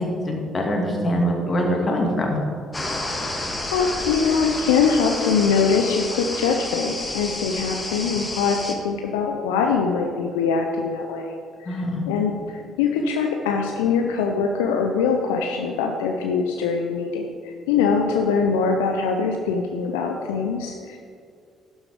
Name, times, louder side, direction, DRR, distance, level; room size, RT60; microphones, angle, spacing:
voice 1, 0.0-2.4 11.7-12.0, equal, 35° left, 0 dB, 2.5 m, -23 dB
sound 1, 2.7-8.8, left 2 dB, 20° left, 1.6 m, -30 dB
voice 2, 3.7-11.3 11.6-21.0, left 5 dB, 75° left, 3 dB, 0.6 m, -23 dB
12.0 x 6.3 x 5.0 m, 2.3 s
hypercardioid pair, 50°, 0 cm